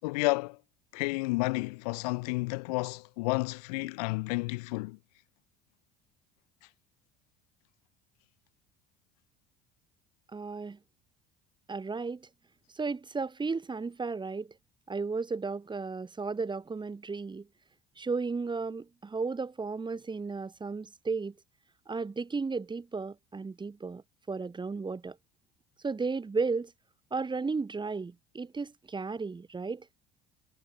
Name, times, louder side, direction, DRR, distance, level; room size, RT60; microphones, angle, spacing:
voice 1, 0.0-0.6 0.9-5.0, left 26 dB, 85° left, 6.2 m, -31 dB
voice 2, 10.3-10.8 11.7-12.3 12.7-14.5 14.9-17.5 18.0-21.3 21.9-24.0 24.3-25.2 25.8-26.7 27.1-29.9, right 4 dB, 25° right, 5.7 m, -34 dB
supercardioid pair, 80°, 19 cm